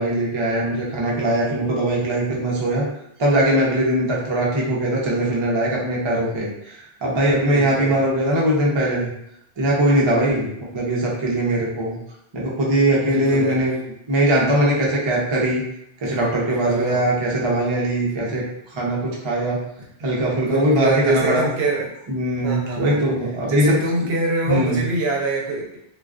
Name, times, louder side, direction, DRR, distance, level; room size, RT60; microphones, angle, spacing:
voice 1, 0.0-2.9 3.2-9.1 9.6-12.0 12.3-13.7 14.1-15.6 16.0-18.4 18.7-19.6 20.0-21.5 22.1-23.6 24.5-24.8, right 1 dB, 40° right, -4 dB, 0.4 m, -21 dB
voice 2, 7.4-8.1 9.9-10.3 13.0-13.6 16.6-17.1 18.3-18.4 20.4-21.9 22.4-23.0 23.5-25.8, right 2 dB, 70° right, -2 dB, 0.8 m, -25 dB
2.3 x 2.3 x 2.3 m, 0.77 s
omnidirectional pair, 1.2 m